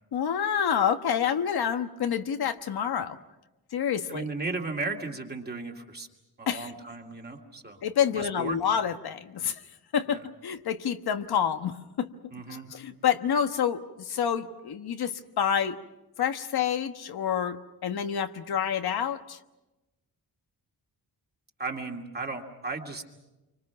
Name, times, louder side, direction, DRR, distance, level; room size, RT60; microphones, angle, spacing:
voice 1, 0.1-3.2 3.7-4.3 6.5-6.7 7.8-9.6 9.9-12.1 12.5-15.8 16.2-19.4, left 8 dB, 85° left, 8 dB, 1.3 m, -28 dB
voice 2, 4.1-6.1 6.4-7.8 8.1-8.6 10.1-10.2 12.3-12.7 21.6-23.0, right 3 dB, 25° right, 2 dB, 2.4 m, -35 dB
29.0 x 25.0 x 5.9 m, 1.0 s
wide cardioid pair, 145°, 37 cm